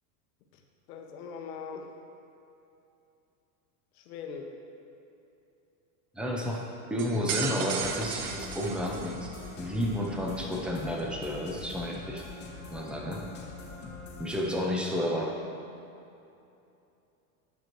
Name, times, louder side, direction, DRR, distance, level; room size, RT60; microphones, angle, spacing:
voice 1, 0.9-1.9 3.9-4.5, left 6 dB, 80° left, 2 dB, 1.0 m, -41 dB
voice 2, 6.1-6.6 6.9-9.3 9.6-12.2 12.7-13.3 14.2-15.4, equal, ahead, -1 dB, 0.5 m, -31 dB
sound 1, 7.0-9.5, right 6 dB, 55° right, 0.7 m, -35 dB
sound 2, 7.6-14.4, left 4 dB, 25° left, 1.0 m, -43 dB
9.3 x 6.0 x 3.1 m, 2.7 s
supercardioid pair, 140°, 45 cm